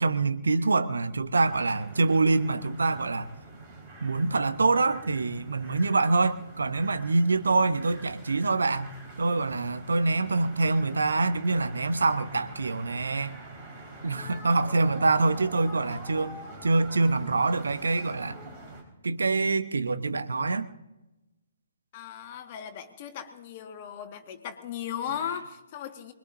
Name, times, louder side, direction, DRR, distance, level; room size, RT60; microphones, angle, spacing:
voice 1, 0.0-3.3 4.0-8.9 9.2-13.3 14.0-16.4 16.6-18.4 19.0-20.7, right 3 dB, 65° right, 0.9 m, -25 dB
sound 1, 1.4-18.8, right 2 dB, 30° right, 4.8 m, -45 dB
voice 2, 21.9-26.1, left 9 dB, 35° left, 1.7 m, -37 dB
25.0 x 21.5 x 2.7 m
figure-of-eight pair, 130°, 0 cm